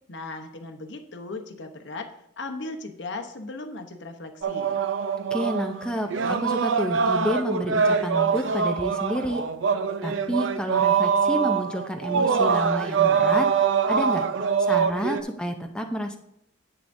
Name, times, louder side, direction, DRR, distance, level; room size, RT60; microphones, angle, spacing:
voice 1, 0.1-4.8, left 2 dB, 65° left, 6 dB, 0.9 m, -37 dB
sound 1, 4.4-15.2, right 6 dB, 70° right, 0.5 m, -24 dB
voice 2, 5.3-9.4 10.0-13.5 13.9-14.3 14.6-16.2, equal, 5° left, 3 dB, 0.5 m, -29 dB
10.0 x 8.0 x 2.6 m, 0.79 s
head